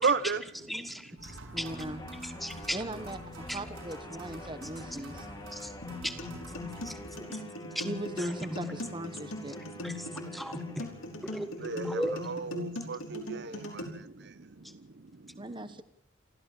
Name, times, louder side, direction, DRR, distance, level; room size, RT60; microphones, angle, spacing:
voice 1, 0.0-0.4 11.6-13.8 14.2-14.3, right 5 dB, 55° right, 0.8 m, -32 dB
voice 2, 0.6-1.6 2.2-2.8 3.5-3.6 4.9-5.0 5.5-5.7 6.0-6.1 6.8-7.4 7.7-7.9 8.2-8.3 9.8-10.9 11.2-12.3, equal, ahead, 1.6 m, -37 dB
sound 1, 1.2-7.2, right 1 dB, 85° right, 6.3 m, -47 dB
voice 3, 1.5-2.0 2.7-5.3 7.8-9.6 15.3-15.8, right 1 dB, 25° right, 1.1 m, -39 dB
sound 2, 1.6-11.8, left 1 dB, 20° left, 2.5 m, -47 dB
sound 3, 5.8-13.8, left 2 dB, 80° left, 5.1 m, -40 dB
28.0 x 14.0 x 7.6 m
head